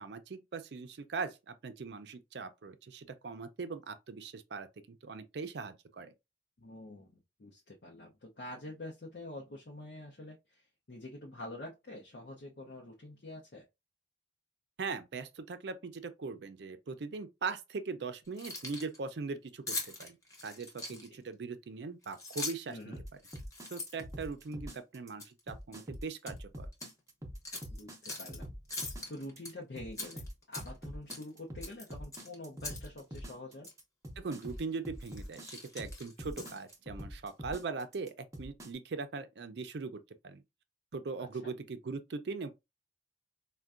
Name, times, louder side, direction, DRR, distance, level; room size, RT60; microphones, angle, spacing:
voice 1, 0.0-6.1 14.8-20.2 20.4-22.9 23.7-26.7 34.2-40.4 40.9-42.5, right 4 dB, 70° right, 0.5 m, -40 dB
voice 2, 6.6-13.7 20.9-21.1 22.7-23.0 27.7-33.7 41.4-41.5, left 1 dB, 60° left, 0.6 m, -47 dB
Keys jangling, 18.3-19.0 19.7-21.3 22.0-22.8 23.2-24.8 25.2-25.4 25.7-26.4 26.7-26.9 27.4-28.4 28.7-29.5 29.9-30.8 31.1-31.3 31.6-32.9 33.1-33.2 33.6-33.8 34.4-34.6 35.0-36.7, left 2 dB, 15° left, 0.8 m, -42 dB
sound 1, 22.9-38.7, equal, 15° right, 0.5 m, -44 dB
4.4 x 2.2 x 2.4 m
head